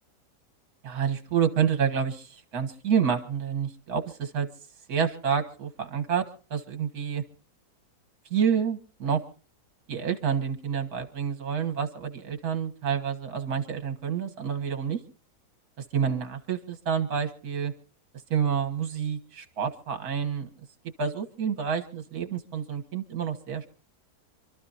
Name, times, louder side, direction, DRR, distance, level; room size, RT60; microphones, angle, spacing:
voice 1, 0.8-4.5 4.9-6.2 6.5-7.2 8.3-9.2 9.9-15.0 15.8-17.7 18.3-20.5 21.0-23.7, right 7 dB, 65° right, 8 dB, 2.0 m, -28 dB
27.5 x 13.0 x 2.8 m, 0.38 s
omnidirectional pair, 1.7 m